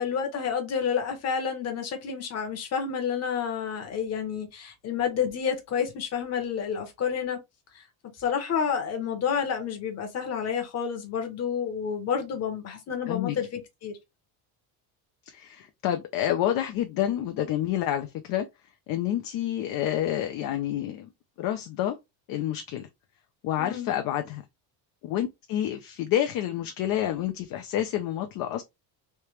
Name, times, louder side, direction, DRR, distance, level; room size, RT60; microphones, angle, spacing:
voice 1, 0.0-7.4 7.7-7.8 8.2-14.0 23.6-23.9, left 7 dB, 30° left, 0.9 m, -29 dB
voice 2, 13.1-13.4 15.3-18.5 18.9-21.1 21.4-22.0 22.3-22.9 23.4-24.4 25.0-28.6, left 11 dB, 45° left, 0.5 m, -28 dB
3.3 x 2.8 x 3.1 m
cardioid pair, 170°, 49 cm